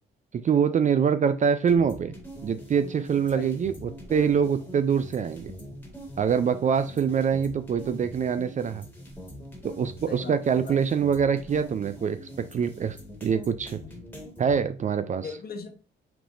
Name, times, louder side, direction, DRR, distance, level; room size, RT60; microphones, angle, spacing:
voice 1, 0.3-2.1 2.4-5.5 6.2-8.9 9.6-12.2 12.5-13.8 14.4-15.3, right 7 dB, 40° right, 11 dB, 0.4 m, -24 dB
sound 1, 1.7-14.6, equal, 10° left, 1.7 m, -43 dB
voice 2, 10.1-10.8 15.2-15.7, left 5 dB, 50° left, 4 dB, 1.1 m, -39 dB
5.8 x 3.4 x 2.6 m, 0.37 s
cardioid pair, 90°, 20 cm